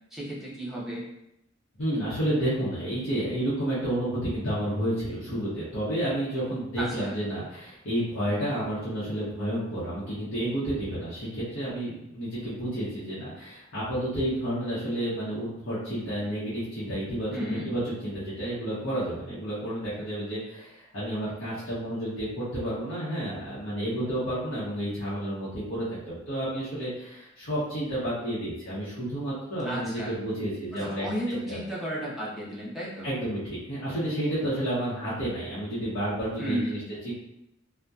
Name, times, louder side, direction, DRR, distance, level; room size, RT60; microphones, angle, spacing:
voice 1, 0.1-1.1 6.8-7.2 17.3-17.7 29.6-30.2 30.7-33.1 36.4-36.9, equal, ahead, -8 dB, 0.7 m, -33 dB
voice 2, 1.8-17.3 17.6-31.6 33.0-36.8 37.0-37.1, right 1 dB, 70° left, -10 dB, 0.8 m, -31 dB
2.7 x 2.1 x 2.3 m, 0.83 s
head